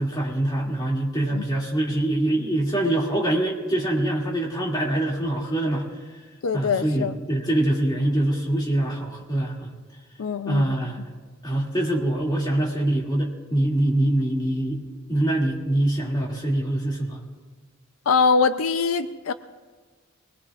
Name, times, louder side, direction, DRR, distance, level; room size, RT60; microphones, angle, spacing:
voice 1, 0.0-6.2 6.5-9.7 10.5-11.1 11.4-14.8 15.1-17.2, right 1 dB, 20° left, -2 dB, 2.3 m, -24 dB
voice 2, 6.4-7.1 10.2-10.7 18.1-19.3, left 5 dB, 80° left, 11 dB, 0.5 m, -23 dB
24.0 x 19.5 x 2.4 m, 1.4 s
head